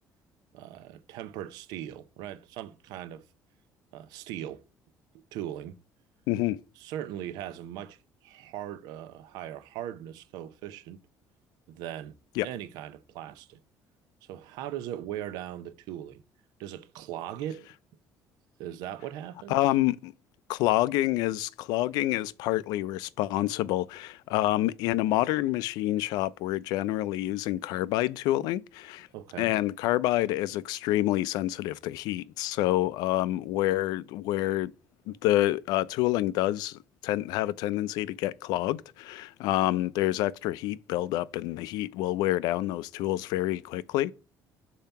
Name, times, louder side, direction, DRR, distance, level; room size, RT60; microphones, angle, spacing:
voice 1, 0.5-3.2 3.9-4.6 5.3-5.8 6.8-11.0 11.7-12.2 12.4-13.6 14.3-16.2 16.6-17.7 18.6-19.6 29.1-29.5, right 11 dB, 90° right, 0.6 m, -39 dB
voice 2, 6.3-6.6 12.4-12.5 19.5-20.1 20.5-29.1 29.4-34.7 35.1-44.1, left 15 dB, 85° left, 0.4 m, -28 dB
6.9 x 2.8 x 5.6 m
cardioid pair, 165°, 7 cm